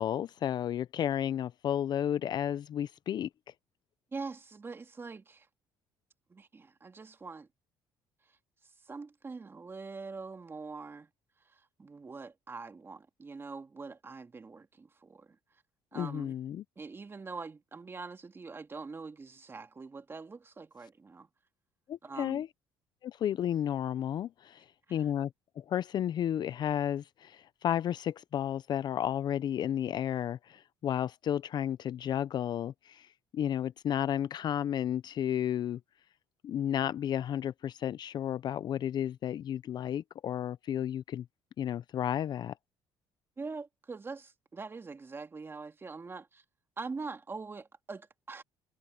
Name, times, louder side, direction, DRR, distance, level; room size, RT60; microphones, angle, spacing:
voice 1, 0.0-3.3 15.9-16.6 21.9-22.5 23.0-24.6 24.9-25.3 25.6-33.1 33.3-35.8 36.4-41.2 41.6-42.5, left 10 dB, 50° left, 0.6 m, -32 dB
voice 2, 4.1-5.5 6.3-7.5 8.6-11.1 11.4-15.4 15.9-16.3 16.8-21.3 22.0-22.4 24.9-25.1 43.4-46.4 46.8-48.4, right 4 dB, 25° right, 2.3 m, -43 dB
cardioid pair, 95°, 9 cm